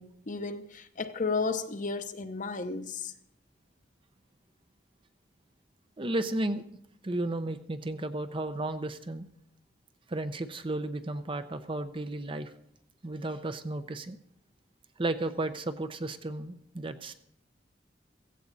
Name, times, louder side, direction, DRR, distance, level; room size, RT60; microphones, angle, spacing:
voice 1, 0.0-3.1, left 4 dB, 45° left, 0.8 m, -33 dB
voice 2, 6.0-6.6 7.0-9.3 10.1-12.5 13.0-14.2 15.0-17.2, right 2 dB, 30° right, 0.7 m, -33 dB
16.0 x 15.5 x 4.1 m
head